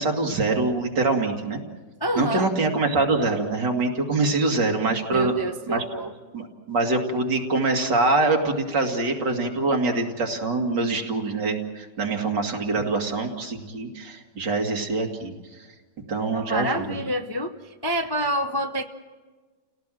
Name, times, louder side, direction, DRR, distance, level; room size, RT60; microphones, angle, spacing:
voice 1, 0.0-1.6 2.2-5.3 5.7-5.8 6.3-15.3 16.1-17.0, right 3 dB, 80° right, 2 dB, 2.9 m, -24 dB
voice 2, 2.0-2.5 5.1-6.1 16.3-17.5 17.8-18.8, equal, 25° left, 5 dB, 0.5 m, -27 dB
30.0 x 17.5 x 7.6 m, 1.3 s
omnidirectional pair, 1.9 m